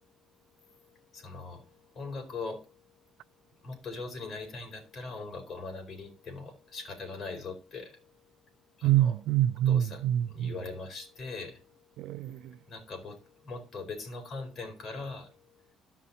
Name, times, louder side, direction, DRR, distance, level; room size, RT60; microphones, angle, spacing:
voice 1, 1.1-1.6 1.9-2.6 3.6-7.9 8.8-9.1 9.7-11.6 12.7-15.3, left 3 dB, 45° left, 4.3 m, -40 dB
voice 2, 8.8-10.5 12.0-12.6, right 12 dB, 85° right, 0.4 m, -26 dB
13.5 x 5.6 x 4.2 m
cardioid pair, 110°, 0 cm